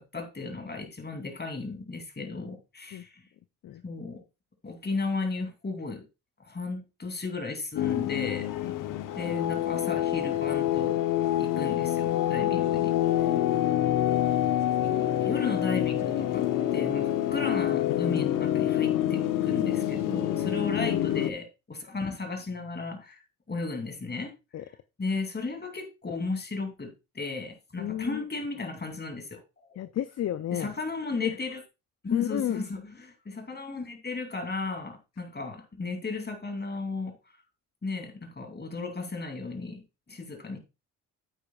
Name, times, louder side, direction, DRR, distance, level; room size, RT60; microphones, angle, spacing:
voice 1, 0.0-3.2 3.8-4.2 4.6-6.0 6.5-8.5 9.1-11.0 11.4-12.9 15.2-16.4 16.7-23.2 23.5-24.3 25.0-26.9 27.1-29.8 30.5-31.6 32.0-37.1 37.8-39.8 40.1-40.6, left 3 dB, 30° left, 2.9 m, -35 dB
sound 1, 7.8-21.3, left 12 dB, 65° left, 0.9 m, -26 dB
voice 2, 8.6-9.1 12.4-12.6 13.3-13.8 20.3-20.5 24.5-24.6 27.8-28.2 29.8-30.7 31.2-31.4 32.1-32.6, left 11 dB, 50° left, 0.6 m, -33 dB
9.3 x 8.6 x 2.4 m
supercardioid pair, 55°, 35 cm